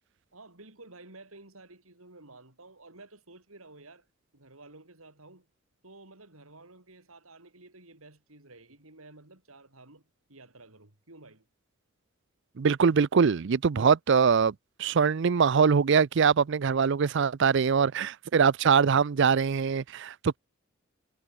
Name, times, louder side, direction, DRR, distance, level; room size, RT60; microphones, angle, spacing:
voice 1, 0.3-4.1 4.3-5.5 5.8-10.0 10.3-11.5, right 2 dB, 80° right, 4.5 m, -52 dB
voice 2, 12.6-14.5 14.8-20.4, right 6 dB, 55° right, 0.5 m, -23 dB
head